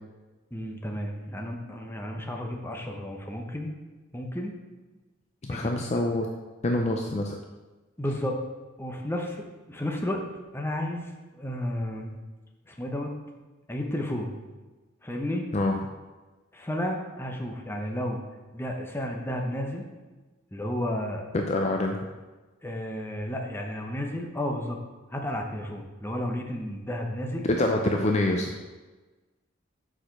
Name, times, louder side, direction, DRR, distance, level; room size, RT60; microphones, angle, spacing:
voice 1, 0.5-3.7 4.1-4.5 5.5-6.0 8.0-8.4 8.8-9.4 9.7-10.2 10.5-12.2 12.7-13.1 13.7-14.3 15.0-15.5 16.5-18.2 18.5-19.8 20.5-21.2 22.6-24.8 25.1-27.4, left 1 dB, 10° left, 1 dB, 0.9 m, -32 dB
voice 2, 5.4-6.3 6.6-7.3 15.5-15.7 21.3-22.0 27.5-28.6, left 2 dB, 35° left, 2 dB, 0.5 m, -25 dB
6.5 x 5.0 x 5.8 m, 1.2 s
head